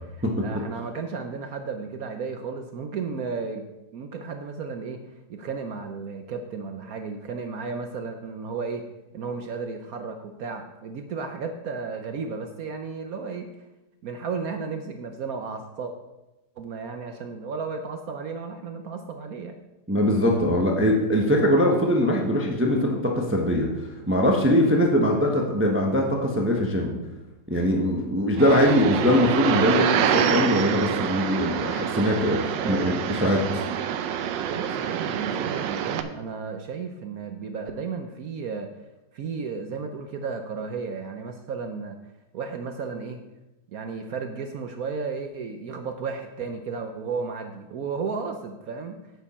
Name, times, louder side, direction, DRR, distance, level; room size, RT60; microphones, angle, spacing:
voice 1, 0.0-3.7 3.9-5.0 5.3-8.8 9.1-13.5 14.0-15.9 16.6-19.6 32.6-33.0 34.4-38.7 39.1-42.0 42.3-43.2 43.7-49.0, right 5 dB, 65° right, 6 dB, 1.0 m, -33 dB
voice 2, 19.9-23.7 24.1-26.9 27.5-33.7, equal, 10° right, 0 dB, 0.7 m, -22 dB
sound 1, 28.4-36.0, right 9 dB, 80° right, 1.3 m, -26 dB
9.0 x 8.3 x 4.3 m, 1.0 s
omnidirectional pair, 2.0 m